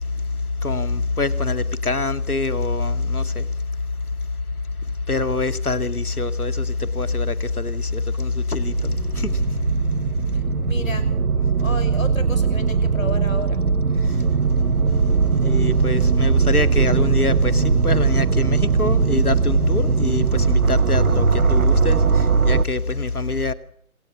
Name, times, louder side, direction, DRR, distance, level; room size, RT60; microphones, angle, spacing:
voice 1, 0.6-3.4 5.1-8.9 9.1-9.4 15.4-23.5, left 3 dB, 80° left, 2.2 m, -24 dB
sound 1, 8.6-22.7, right 5 dB, 70° right, 1.0 m, -20 dB
voice 2, 10.3-11.1 11.6-13.6, left 3 dB, 65° left, 6.0 m, -30 dB
26.5 x 25.0 x 7.2 m
figure-of-eight pair, 150°, 44 cm